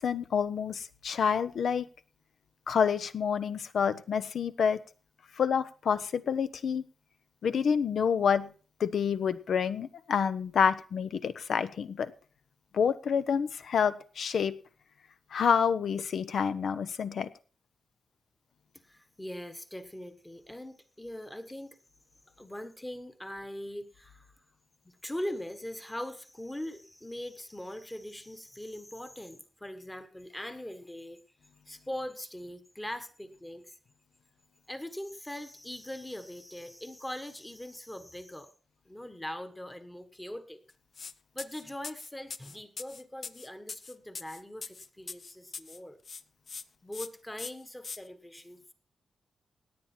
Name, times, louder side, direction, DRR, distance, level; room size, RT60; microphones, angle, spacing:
voice 1, 0.0-1.9 2.7-4.8 5.4-6.8 7.4-8.5 8.8-12.1 12.7-14.5 15.3-17.3, left 7 dB, 65° left, 13 dB, 0.8 m, -28 dB
voice 2, 18.8-21.8 22.4-24.3 24.8-31.2 31.7-33.8 34.7-38.5 38.8-40.6 41.3-46.0 46.8-48.7, left 1 dB, 10° left, 10 dB, 1.3 m, -41 dB
sound 1, 40.9-41.1 41.4-45.8 46.0-46.6 46.9-47.1 47.4-48.0, left 5 dB, 40° left, 0.6 m, -41 dB
17.5 x 8.9 x 4.4 m, 0.39 s
wide cardioid pair, 180°, 0 cm